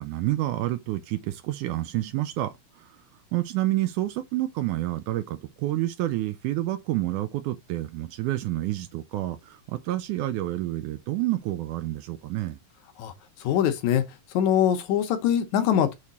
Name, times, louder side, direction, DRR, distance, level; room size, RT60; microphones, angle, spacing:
voice 1, 0.0-3.0 3.3-12.6, right 15 dB, 80° right, 1.9 m, -29 dB
voice 2, 13.4-14.0 14.3-15.9, left 9 dB, 70° left, 2.1 m, -23 dB
6.6 x 3.5 x 4.1 m
omnidirectional pair, 3.8 m